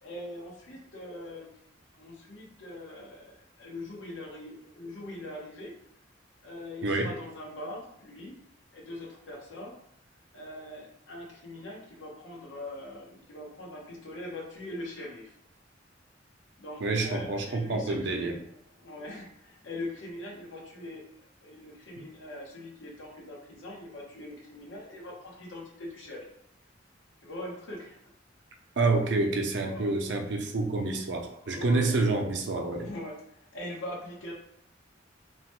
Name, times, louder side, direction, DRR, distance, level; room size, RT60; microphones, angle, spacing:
voice 1, 0.0-1.5 1.9-5.7 6.4-8.4 8.7-9.7 10.3-15.4 16.6-18.4 18.8-26.3 27.2-28.0 29.7-29.9 31.4-32.1 32.8-34.3, left 1 dB, 85° left, -2 dB, 0.8 m, -42 dB
voice 2, 16.8-18.4 28.8-32.9, right 3 dB, 65° right, 3 dB, 0.5 m, -28 dB
2.9 x 2.1 x 2.9 m, 0.73 s
head